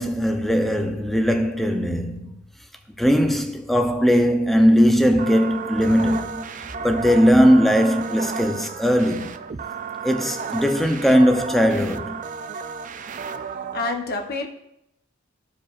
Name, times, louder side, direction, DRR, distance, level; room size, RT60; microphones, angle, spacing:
voice 1, 0.0-2.3 3.0-6.5 6.8-9.3 10.0-12.2, equal, ahead, 0.6 m, -19 dB
sound 1, 5.1-13.9, right 5 dB, 40° right, 0.4 m, -33 dB
voice 2, 13.7-14.5, left 3 dB, 50° left, 0.9 m, -28 dB
13.5 x 4.8 x 2.5 m
head